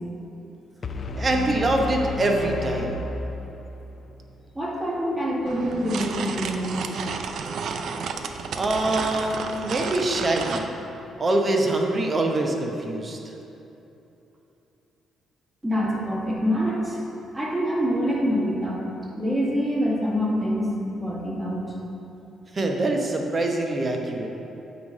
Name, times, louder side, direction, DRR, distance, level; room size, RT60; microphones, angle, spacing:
sound 1, 0.8-3.9, left 3 dB, 45° left, 0.4 m, -32 dB
voice 1, 1.2-3.0 8.5-10.7 11.2-13.2 22.5-24.3, right 2 dB, 35° right, 2 dB, 1.0 m, -24 dB
voice 2, 4.6-6.8 15.6-17.0 17.3-18.8 19.1-21.7, equal, 20° right, -5 dB, 1.8 m, -25 dB
sound 2, 5.5-10.7, right 5 dB, 70° right, 0.4 m, -32 dB
9.3 x 3.2 x 6.5 m, 2.9 s
cardioid pair, 90°, 0 cm